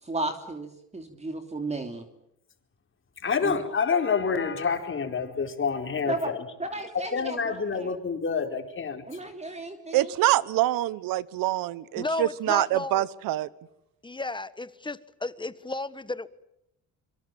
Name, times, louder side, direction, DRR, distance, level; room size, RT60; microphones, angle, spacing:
voice 1, 0.0-2.1 3.4-3.6 6.0-6.3 6.6-7.9 9.1-10.1, right 2 dB, 20° right, 3.0 m, -34 dB
voice 2, 3.2-6.4 7.1-9.0, left 5 dB, 35° left, 4.6 m, -27 dB
voice 3, 9.9-13.5, right 15 dB, 85° right, 1.1 m, -25 dB
voice 4, 12.0-13.1 14.0-16.3, left 2 dB, 15° left, 1.4 m, -33 dB
26.0 x 24.0 x 7.5 m
cardioid pair, 95°, 33 cm